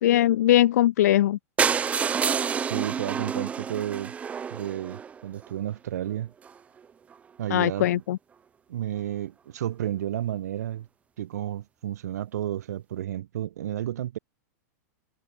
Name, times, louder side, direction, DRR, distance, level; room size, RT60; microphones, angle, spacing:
voice 1, 0.0-1.4 7.5-8.2, left 13 dB, 75° left, 0.6 m, -20 dB
sound 1, 1.6-5.5 6.1-6.2 6.4-6.6 6.8-6.9 7.1-7.2, right 7 dB, 15° right, 2.8 m, -28 dB
voice 2, 2.7-4.1 4.5-6.3 7.4-8.0 8.7-10.9 11.2-14.2, right 12 dB, 80° right, 7.0 m, -32 dB
supercardioid pair, 155°, 9 cm